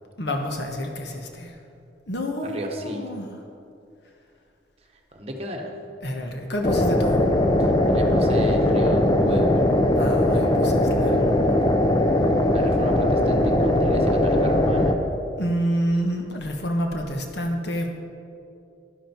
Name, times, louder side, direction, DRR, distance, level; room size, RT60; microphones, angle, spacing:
voice 1, 0.2-1.5 2.1-3.3 6.0-7.2 10.0-11.2 15.4-17.9, equal, 60° left, 3 dB, 1.2 m, -28 dB
voice 2, 2.4-3.1 5.1-5.7 7.6-9.7 12.5-14.9, equal, 30° right, 2 dB, 1.2 m, -33 dB
sound 1, 6.6-14.9, left 1 dB, 20° left, 0.6 m, -20 dB
11.0 x 11.0 x 4.5 m, 2.6 s
head